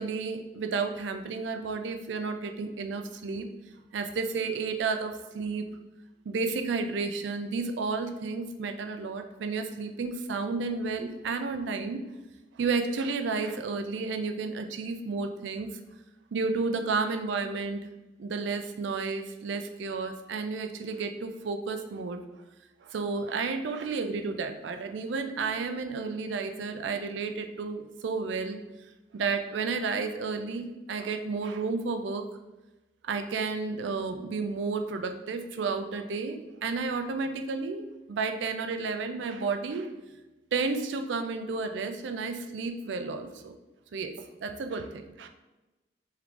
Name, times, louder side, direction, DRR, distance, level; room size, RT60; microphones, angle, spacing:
voice 1, 0.0-3.5 3.9-5.6 6.3-12.0 12.6-15.7 16.3-17.9 18.2-22.2 22.8-28.6 29.1-32.2 33.0-39.9 40.5-43.5 43.9-44.1 44.4-45.3, right 4 dB, 75° right, 7 dB, 0.4 m, -32 dB
3.7 x 3.2 x 3.4 m, 1.1 s
head